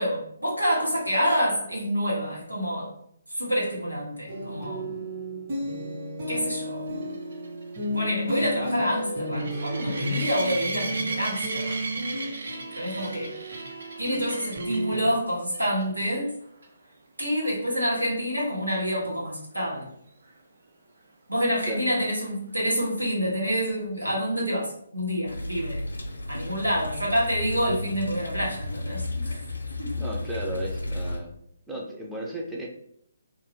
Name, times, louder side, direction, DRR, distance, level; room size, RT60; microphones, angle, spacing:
voice 1, 0.0-2.9 3.3-5.1 6.3-7.2 7.9-11.9 12.7-13.3 14.0-16.3 17.2-19.9 21.3-25.8 26.3-29.4 29.8-30.1, equal, 85° right, -5 dB, 1.4 m, -27 dB
sound 1, 4.3-15.1, equal, 35° right, 1.2 m, -33 dB
sound 2, 7.0-14.9 15.5-15.8 16.1-16.2 16.6-16.7 20.3-20.4, right 3 dB, 55° right, 0.6 m, -36 dB
sound 3, 25.3-31.2, left 2 dB, 70° left, 0.6 m, -33 dB
voice 2, 30.0-31.3 31.7-32.7, right 1 dB, 5° right, -3 dB, 0.6 m, -34 dB
2.6 x 2.3 x 3.6 m, 0.70 s
figure-of-eight pair, 135°, 0 cm